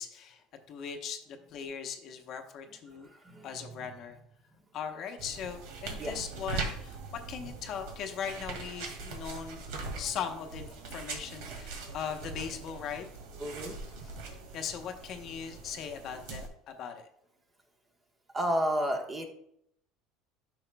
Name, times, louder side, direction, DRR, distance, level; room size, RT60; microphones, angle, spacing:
voice 1, 0.0-3.1 3.4-4.2 4.7-9.6 10.0-13.1 14.0-14.2 14.5-17.1, left 7 dB, 45° left, 5 dB, 0.9 m, -39 dB
voice 2, 2.7-3.9 6.0-6.2 13.4-13.7 18.3-19.3, equal, 20° right, 3 dB, 1.2 m, -33 dB
sound 1, 5.2-16.5, right 3 dB, 80° right, 2.0 m, -41 dB
9.9 x 6.3 x 2.3 m, 0.72 s
cardioid pair, 135°, 0 cm